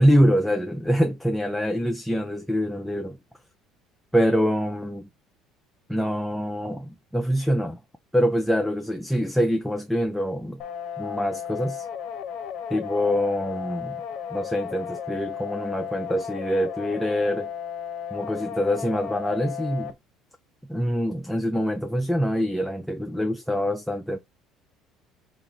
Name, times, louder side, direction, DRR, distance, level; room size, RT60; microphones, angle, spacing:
voice 1, 0.0-3.2 4.1-5.1 5.9-7.8 8.1-10.6 11.0-11.8 12.7-14.0 14.3-17.5 18.1-19.9 20.7-24.2, equal, ahead, 0.3 m, -25 dB
sound 1, 10.6-19.9, left 8 dB, 55° left, 0.6 m, -34 dB
3.9 x 2.3 x 3.0 m
cardioid pair, 140°, 0 cm